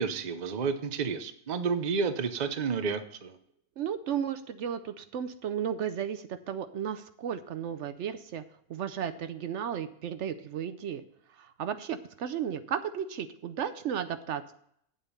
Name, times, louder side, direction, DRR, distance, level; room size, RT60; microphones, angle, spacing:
voice 1, 0.0-3.4, right 5 dB, 40° right, 9 dB, 0.8 m, -30 dB
voice 2, 3.8-8.4 8.7-11.0 11.3-14.5, right 8 dB, 75° right, 11 dB, 0.9 m, -34 dB
9.0 x 7.3 x 5.5 m, 0.68 s
omnidirectional pair, 1.3 m